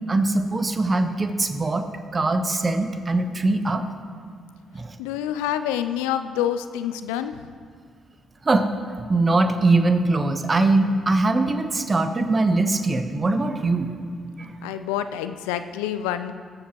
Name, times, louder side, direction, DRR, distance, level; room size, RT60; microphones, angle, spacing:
voice 1, 0.1-3.8 4.7-4.9 8.4-8.7 9.1-13.9 14.4-14.5, right 2 dB, 35° right, 8 dB, 1.0 m, -22 dB
voice 2, 5.0-7.5 14.6-16.4, left 10 dB, 80° left, 10 dB, 0.4 m, -27 dB
21.0 x 7.3 x 3.0 m, 2.1 s
hypercardioid pair, 45°, 0 cm